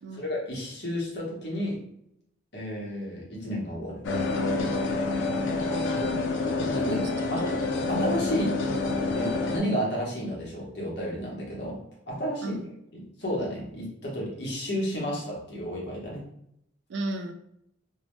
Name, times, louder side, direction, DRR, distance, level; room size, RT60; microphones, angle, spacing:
voice 1, 0.1-1.8 2.5-4.0 6.7-7.5 7.9-8.5 9.1-11.8 12.1-12.6 12.9-16.2, equal, 55° left, -4 dB, 0.9 m, -32 dB
sound 1, 4.0-9.6, left 3 dB, 70° left, 0.4 m, -27 dB
voice 2, 5.6-6.3 7.4-7.5 12.4-12.7 16.9-17.3, right 2 dB, 65° right, 5 dB, 0.4 m, -35 dB
2.7 x 2.1 x 3.1 m, 0.75 s
head